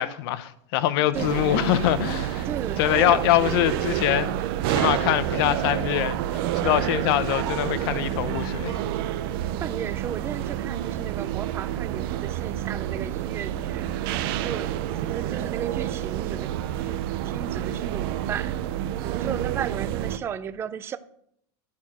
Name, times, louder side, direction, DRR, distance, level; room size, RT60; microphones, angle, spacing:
voice 1, 0.0-2.5 2.8-4.4 4.7-8.8, left 13 dB, 60° left, 0.8 m, -24 dB
voice 2, 1.0-1.7 2.4-3.3 9.5-13.9 14.4-14.7 15.0-16.5 16.9-18.6 19.0-21.0, right 8 dB, 15° right, 0.4 m, -35 dB
sound 1, 1.1-20.2, right 12 dB, 55° right, 0.7 m, -28 dB
12.5 x 4.5 x 7.6 m
supercardioid pair, 155°, 15 cm